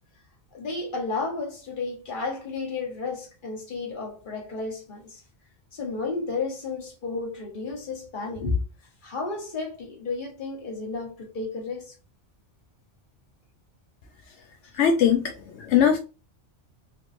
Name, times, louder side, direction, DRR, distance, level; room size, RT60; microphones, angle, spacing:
voice 1, 0.5-5.2 5.7-8.6 9.0-11.9 14.5-14.6 15.6-15.7, left 3 dB, 45° left, 1.2 m, -32 dB
voice 2, 14.8-15.3 15.7-16.0, left 8 dB, 80° left, 0.9 m, -19 dB
3.3 x 3.2 x 2.5 m
omnidirectional pair, 1.2 m